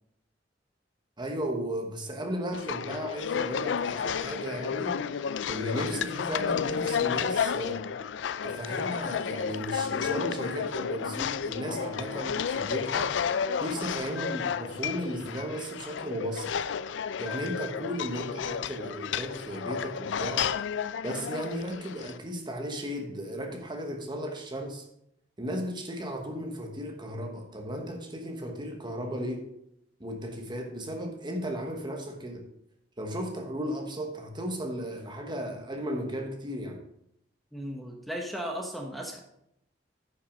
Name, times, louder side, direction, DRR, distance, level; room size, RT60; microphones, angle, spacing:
voice 1, 1.2-5.0 5.5-7.9 8.4-13.1 13.6-16.5 17.2-20.5 21.0-24.8 25.4-29.5 30.0-32.5 33.0-36.8, equal, 25° right, 3 dB, 1.2 m, -35 dB
sound 1, 2.5-22.2, left 7 dB, 85° left, 0.4 m, -32 dB
voice 2, 37.5-39.2, equal, ahead, 1 dB, 1.1 m, -36 dB
9.7 x 6.0 x 5.1 m, 0.77 s
head